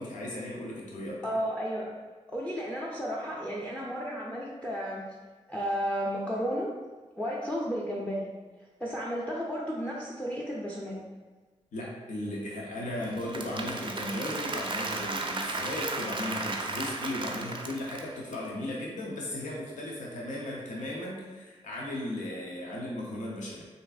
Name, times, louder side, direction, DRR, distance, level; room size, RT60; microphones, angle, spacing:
voice 1, 0.0-1.4 11.7-23.7, left 1 dB, 85° left, -4 dB, 0.6 m, -36 dB
voice 2, 1.2-1.9 2.3-5.0 5.5-6.7 7.2-8.3 8.8-11.0, equal, 10° left, -4 dB, 0.5 m, -33 dB
Applause / Crowd, 13.0-18.3, right 3 dB, 40° right, 0.4 m, -35 dB
3.2 x 2.5 x 2.4 m, 1.3 s
cardioid pair, 45°, 13 cm